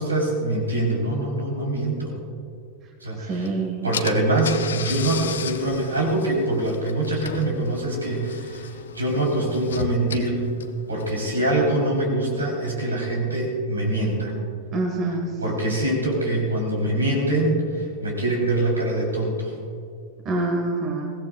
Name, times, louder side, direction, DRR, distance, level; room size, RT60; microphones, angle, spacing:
voice 1, 0.0-2.2 3.0-3.5 3.8-10.4 10.9-14.3 15.4-19.5, right 1 dB, 75° right, -1 dB, 3.9 m, -24 dB
voice 2, 3.2-3.8 14.7-15.3 20.2-21.1, right 2 dB, 35° right, 1 dB, 1.9 m, -26 dB
Car / Engine, 3.5-3.6 3.9-11.4, left 7 dB, 65° left, 0.8 m, -35 dB
22.5 x 17.0 x 2.5 m, 2.3 s
figure-of-eight pair, 90°, 0 cm